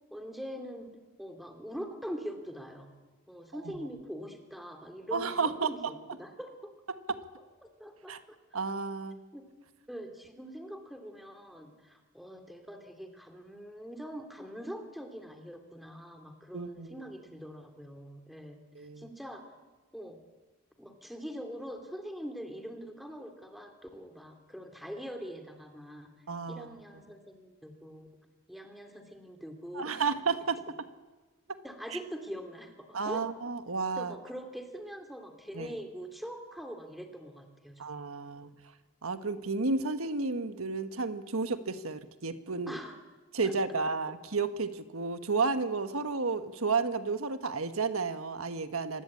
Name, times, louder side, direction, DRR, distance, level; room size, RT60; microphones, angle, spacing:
voice 1, 0.1-0.9 1.2-2.9 3.3-5.8 6.1-6.7 7.8-8.4 9.3-9.4 9.9-19.4 19.9-20.2 20.8-26.1 26.5-28.1 28.5-30.0 31.6-33.3 34.0-37.8 38.3-38.5 42.7-43.0 43.4-43.5, equal, ahead, 5 dB, 2.8 m, -43 dB
voice 2, 5.1-5.7 6.9-7.2 8.1-8.2 8.5-9.2 16.5-17.0 18.7-19.1 26.3-26.7 29.7-30.9 31.9-32.0 32.9-34.1 35.5-35.7 37.8-38.5 39.0-42.8 43.3-49.0, right 4 dB, 85° right, 10 dB, 1.5 m, -32 dB
26.0 x 20.5 x 8.6 m, 1.3 s
head